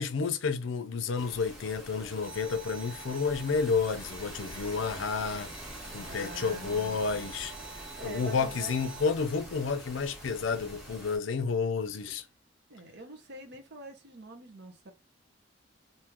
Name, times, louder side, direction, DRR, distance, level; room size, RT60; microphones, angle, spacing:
voice 1, 0.0-5.5 5.9-7.5 8.0-12.2, left 5 dB, 70° left, 0.5 m, -30 dB
sound 1, 1.2-11.2, equal, ahead, 1.0 m, -45 dB
sound 2, 2.2-9.0, right 6 dB, 85° right, 1.0 m, -48 dB
voice 2, 6.1-7.1 8.0-8.7 12.7-14.9, right 3 dB, 60° right, 0.9 m, -45 dB
3.1 x 2.7 x 3.5 m
head